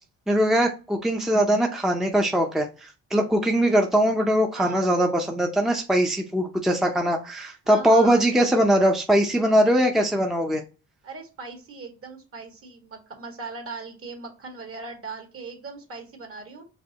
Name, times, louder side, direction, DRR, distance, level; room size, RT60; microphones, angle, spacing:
voice 1, 0.3-10.6, equal, ahead, 2 dB, 0.6 m, -21 dB
voice 2, 4.5-4.9 7.6-8.3 11.0-16.6, right 4 dB, 45° right, 3 dB, 1.7 m, -39 dB
5.2 x 2.8 x 2.8 m, 0.32 s
cardioid pair, 90°, 30 cm